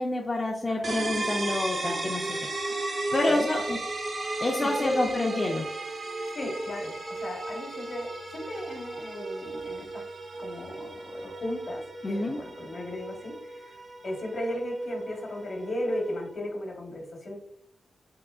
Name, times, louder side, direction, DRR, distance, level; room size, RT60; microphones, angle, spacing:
voice 1, 0.0-2.3 3.1-3.6 4.4-5.7 12.0-12.4, left 2 dB, 30° left, -1 dB, 0.4 m, -27 dB
voice 2, 0.7-1.0 1.8-2.1 2.6-2.8 3.3-3.8 4.6-5.4 6.3-10.0 10.4-13.8 14.0-17.4, left 1 dB, 55° left, 1 dB, 1.0 m, -35 dB
sound 1, 0.8-16.4, right 2 dB, 55° right, 0.6 m, -35 dB
3.6 x 2.8 x 2.3 m, 0.69 s
cardioid pair, 65°, 0 cm